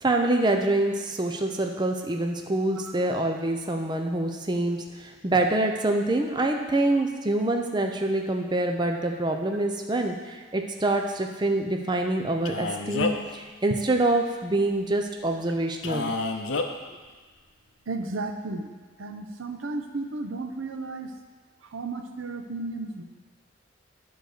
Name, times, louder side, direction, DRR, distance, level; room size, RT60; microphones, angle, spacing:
voice 1, 0.0-16.1, right 2 dB, 20° right, 3 dB, 0.6 m, -26 dB
Male speech man speaking, 12.5-13.3 15.8-16.7, left 3 dB, 70° left, 0.6 m, -28 dB
voice 2, 17.9-18.7 19.0-21.1 21.7-23.0, right 3 dB, 90° right, 6 dB, 0.8 m, -33 dB
9.3 x 4.8 x 6.5 m, 1.4 s
head